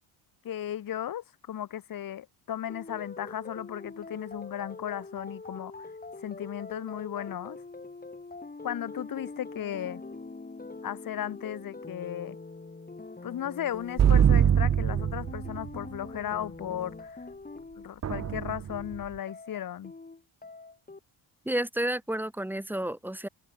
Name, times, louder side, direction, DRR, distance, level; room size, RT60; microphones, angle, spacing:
voice 1, 0.4-5.9 6.2-7.6 8.6-10.0 10.8-12.4 13.2-17.2 17.8-19.9, left 11 dB, 45° left, 1.3 m, -36 dB
sound 1, 2.7-21.0, left 3 dB, 20° left, 4.8 m, -44 dB
sound 2, 14.0-15.8 18.0-19.0, right 9 dB, 35° right, 0.9 m, -23 dB
voice 2, 21.5-23.3, right 1 dB, 5° right, 0.7 m, -31 dB
cardioid pair, 95°, 49 cm